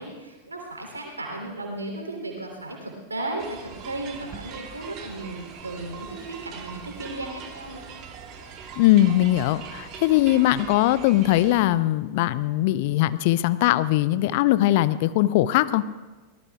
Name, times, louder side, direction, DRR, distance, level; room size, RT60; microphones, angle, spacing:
voice 1, 0.0-7.9, right 2 dB, 80° right, 2 dB, 3.3 m, -35 dB
sound 1, 3.4-11.6, right 6 dB, 35° right, 1.7 m, -41 dB
voice 2, 8.8-15.8, left 15 dB, 50° left, 16 dB, 0.5 m, -20 dB
24.0 x 19.0 x 2.4 m, 1.2 s
figure-of-eight pair, 90°, 0 cm